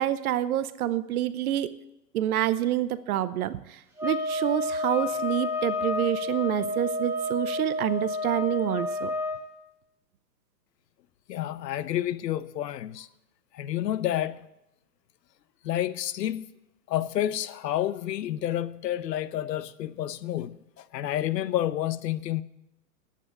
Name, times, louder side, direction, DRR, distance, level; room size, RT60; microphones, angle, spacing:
voice 1, 0.0-1.7 2.1-9.1, right 12 dB, 60° right, 0.8 m, -27 dB
sound 1, 4.0-9.4, left 2 dB, 5° right, 1.9 m, -30 dB
voice 2, 11.3-13.1 13.5-14.5 15.6-16.5 16.9-22.4, left 12 dB, 75° left, 0.8 m, -29 dB
11.0 x 8.5 x 8.1 m
hypercardioid pair, 140°, 50 cm